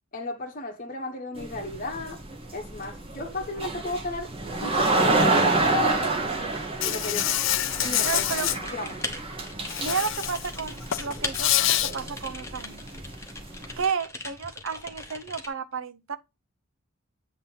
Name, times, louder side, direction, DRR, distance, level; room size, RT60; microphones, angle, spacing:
voice 1, 0.1-2.2 2.5-4.3 4.6-6.2 6.8-7.6 7.8-8.2 8.7-9.1, left 2 dB, 40° left, 1.0 m, -34 dB
sound 1, 1.4-13.8, right 2 dB, 25° right, 1.2 m, -29 dB
Insect, 6.8-8.6 9.7-10.5 10.8-11.9, left 13 dB, 60° left, 0.4 m, -26 dB
voice 2, 8.0-8.5 9.8-12.8 13.8-16.2, right 6 dB, 60° right, 0.6 m, -32 dB
Typing, 8.1-15.5, left 3 dB, 15° left, 1.0 m, -39 dB
7.9 x 2.9 x 5.4 m
head